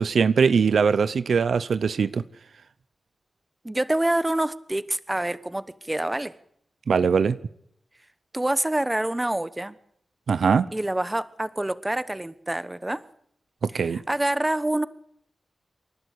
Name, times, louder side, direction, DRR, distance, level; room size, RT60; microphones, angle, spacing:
voice 1, 0.0-2.2 6.9-7.4 10.3-10.7 13.7-14.0, right 6 dB, 85° right, 0.7 m, -21 dB
voice 2, 3.6-6.3 8.3-9.8 10.7-13.0 13.9-14.9, right 1 dB, 15° right, 1.1 m, -26 dB
27.5 x 11.5 x 8.3 m
wide cardioid pair, 75°, 0 cm